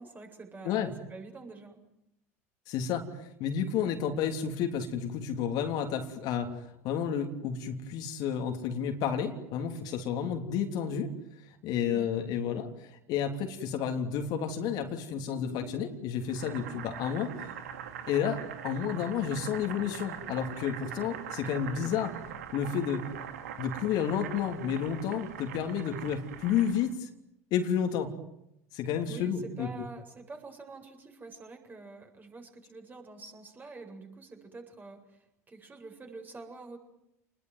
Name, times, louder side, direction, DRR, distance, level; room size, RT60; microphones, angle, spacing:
voice 1, 0.0-1.8 11.9-12.2 21.6-22.0 29.1-36.8, right 3 dB, 20° right, 3 dB, 7.9 m, -47 dB
voice 2, 2.7-11.1 11.6-17.3 18.1-22.1 22.5-23.1 23.6-27.1 27.5-28.1 28.7-29.7, left 8 dB, 55° left, 5 dB, 3.3 m, -31 dB
sound 1, 14.3-14.5 14.9-15.0 15.3-16.4 17.0-17.7 18.0-18.1 18.6-18.7 18.9-20.8 21.2-21.3, left 10 dB, 75° left, 3.3 m, -49 dB
Boiling, 16.3-26.9, right 8 dB, 80° right, 2.7 m, -42 dB
30.0 x 21.0 x 9.5 m, 0.82 s
hypercardioid pair, 80°, 8 cm